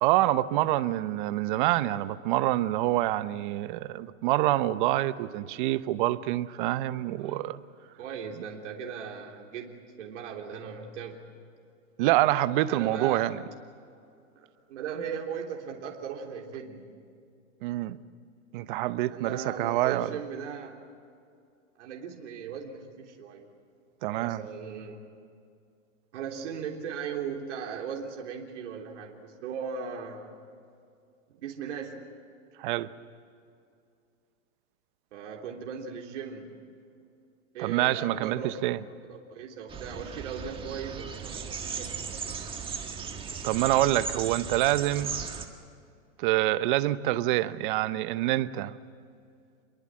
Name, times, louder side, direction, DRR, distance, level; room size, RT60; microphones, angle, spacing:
voice 1, 0.0-7.6 12.0-13.4 17.6-18.0 18.5-20.1 24.0-24.4 32.6-32.9 37.6-38.8 43.4-45.1 46.2-48.7, right 15 dB, 40° right, 14 dB, 0.9 m, -26 dB
voice 2, 8.0-11.2 12.7-13.4 14.4-17.0 19.1-20.8 21.8-23.4 24.1-25.0 26.1-30.4 31.3-32.1 35.1-36.7 37.5-38.7 39.1-42.2, right 6 dB, 60° right, 0 dB, 3.4 m, -38 dB
sound 1, 39.7-45.5, right 6 dB, 15° right, 1.6 m, -37 dB
28.5 x 22.5 x 7.6 m, 2.4 s
hypercardioid pair, 150°, 40 cm